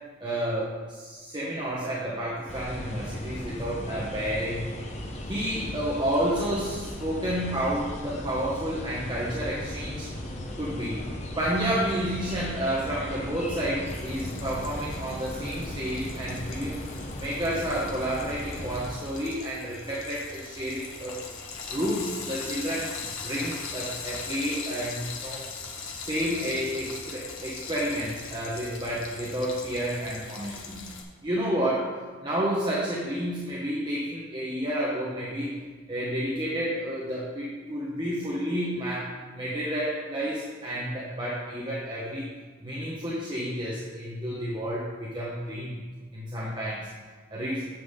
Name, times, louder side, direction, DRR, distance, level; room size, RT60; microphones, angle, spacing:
voice 1, 0.2-4.7 5.3-10.1 10.6-11.0 11.4-16.8 17.2-21.2 21.7-25.4 26.0-30.8 31.2-31.9 32.2-35.5 35.9-42.3 42.6-45.7 46.1-46.9 47.3-47.7, equal, 25° right, -6 dB, 1.2 m, -30 dB
sound 1, 2.5-18.9, left 1 dB, 35° left, 0.9 m, -37 dB
Frying (food), 13.9-31.0, left 4 dB, 85° left, 1.3 m, -40 dB
10.0 x 7.3 x 3.7 m, 1.5 s
head